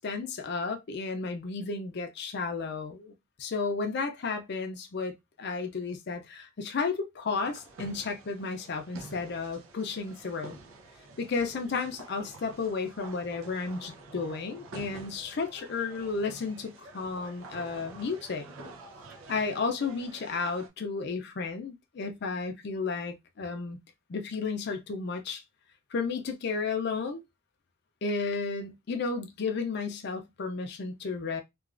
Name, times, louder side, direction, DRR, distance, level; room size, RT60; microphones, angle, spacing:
voice 1, 0.0-10.6 11.2-18.4 19.3-23.8 24.1-25.4 25.9-27.2 28.0-31.4, left 4 dB, 55° left, 0.4 m, -33 dB
sound 1, 7.4-20.7, right 3 dB, 85° right, 0.6 m, -48 dB
3.0 x 2.3 x 2.4 m
head